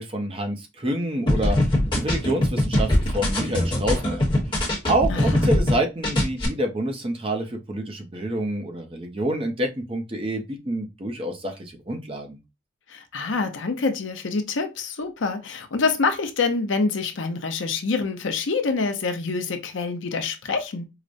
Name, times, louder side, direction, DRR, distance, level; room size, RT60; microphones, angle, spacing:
voice 1, 0.0-4.2 4.9-12.4, right 1 dB, 25° right, 0.6 m, -27 dB
sound 1, 1.3-5.8 6.0-6.5, left 1 dB, 25° left, 1.0 m, -22 dB
voice 2, 5.1-5.5 12.9-20.8, left 4 dB, 70° left, 0.6 m, -26 dB
4.7 x 2.1 x 2.5 m
head